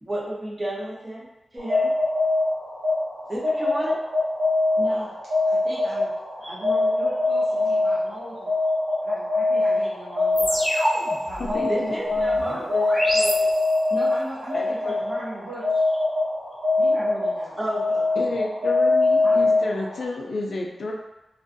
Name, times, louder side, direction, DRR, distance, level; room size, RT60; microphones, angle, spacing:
voice 1, 0.0-1.3 1.5-1.9 3.3-4.0 6.4-6.5 11.7-13.5 14.5-15.0 17.6-18.2, right 1 dB, 20° right, -5 dB, 0.6 m, -32 dB
sound 1, 1.6-20.1, left 2 dB, 85° right, 1.0 m, -23 dB
voice 2, 4.8-5.2 5.4-6.1 6.4-8.6 9.0-10.6 11.2-12.6 13.9-15.8 16.8-18.3 19.2-19.5, right 1 dB, 65° right, -9 dB, 0.6 m, -37 dB
sound 2, 10.4-14.0, equal, 15° left, 0.7 m, -28 dB
voice 3, 11.4-11.9 18.2-20.9, left 2 dB, 70° left, 0 dB, 0.3 m, -30 dB
2.5 x 2.2 x 2.5 m, 0.97 s
wide cardioid pair, 140°, 0 cm